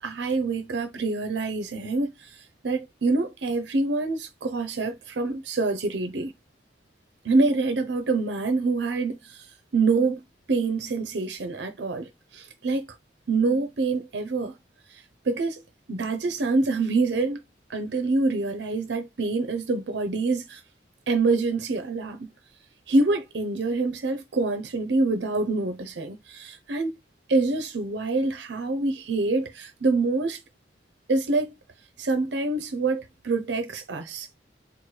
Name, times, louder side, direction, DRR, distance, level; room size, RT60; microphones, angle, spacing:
voice 1, 0.0-6.3 7.2-9.5 9.7-10.2 10.5-12.9 13.3-14.6 14.9-15.6 15.9-17.4 17.7-20.6 21.1-22.3 22.9-27.0 27.3-30.4 31.1-31.5 32.0-34.3, right 3 dB, 70° right, 0.5 m, -26 dB
4.3 x 2.1 x 3.1 m
head